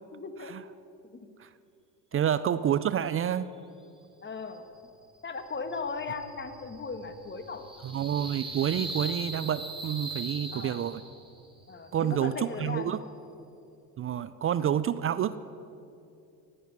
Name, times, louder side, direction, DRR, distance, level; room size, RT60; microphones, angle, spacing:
voice 1, 0.1-0.5 1.0-1.3 2.1-2.2 4.2-4.6 5.2-7.7 10.5-10.8 11.7-13.0, left 4 dB, 20° left, 8 dB, 1.6 m, -37 dB
voice 2, 2.1-3.5 7.8-11.0 11.9-13.0 14.0-15.4, right 9 dB, 30° right, 15 dB, 0.4 m, -28 dB
sound 1, 5.4-11.4, right 2 dB, 10° right, 2.5 m, -40 dB
17.5 x 8.1 x 9.4 m, 2.7 s
hypercardioid pair, 80°, 49 cm